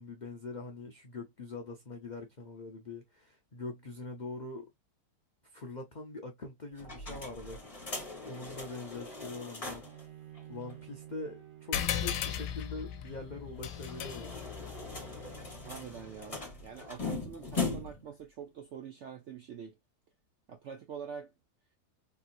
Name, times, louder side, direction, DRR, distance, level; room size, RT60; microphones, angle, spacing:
voice 1, 0.0-4.7 5.5-7.6 8.2-9.8 10.5-14.4, left 3 dB, 50° left, 0.5 m, -43 dB
sound 1, 6.8-10.0 10.3-10.4 10.7-10.8 13.5-18.1, left 3 dB, 20° left, 1.2 m, -40 dB
Bowed string instrument, 9.8-16.9, right 12 dB, 90° right, 1.7 m, -54 dB
sound 2, 11.7-16.6, left 9 dB, 80° left, 1.2 m, -38 dB
voice 2, 15.6-19.8 20.5-21.3, right 7 dB, 65° right, 0.7 m, -45 dB
3.5 x 2.8 x 2.4 m
omnidirectional pair, 1.8 m